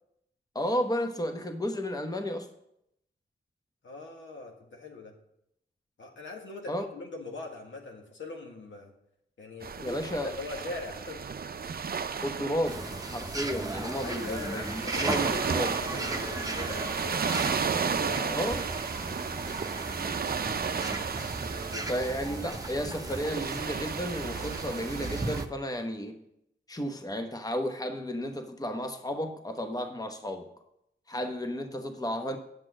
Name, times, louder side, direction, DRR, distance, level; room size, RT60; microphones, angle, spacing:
voice 1, 0.5-2.5 6.7-6.9 9.8-10.3 12.2-15.7 18.3-18.6 21.9-26.2 26.7-30.5 31.1-32.4, equal, 20° left, 6 dB, 1.0 m, -33 dB
voice 2, 3.8-5.2 6.0-8.9 9.4-11.4 14.0-17.3 17.7-18.5 21.7-22.0, left 2 dB, 85° left, 1 dB, 1.7 m, -41 dB
sound 1, 9.6-25.4, right 6 dB, 50° right, 0.5 m, -34 dB
sound 2, 12.6-25.5, right 2 dB, 20° right, 0.9 m, -37 dB
9.0 x 6.0 x 6.3 m, 0.79 s
cardioid pair, 55°, 19 cm